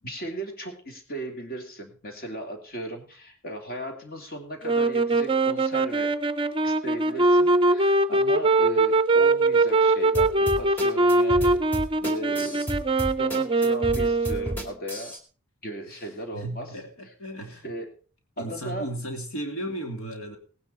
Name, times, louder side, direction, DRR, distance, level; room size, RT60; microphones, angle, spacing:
voice 1, 0.0-6.1 6.6-11.5 12.0-12.6 13.2-15.1 15.6-16.7 17.6-17.9 18.4-18.9, right 1 dB, 45° left, 2.8 m, -36 dB
sound 1, 4.6-14.7, right 2 dB, 25° right, 0.6 m, -22 dB
sound 2, 10.1-15.2, right 1 dB, 10° left, 2.2 m, -32 dB
voice 2, 15.9-17.7 18.4-20.4, right 1 dB, 75° left, 2.9 m, -35 dB
18.0 x 9.7 x 4.4 m
head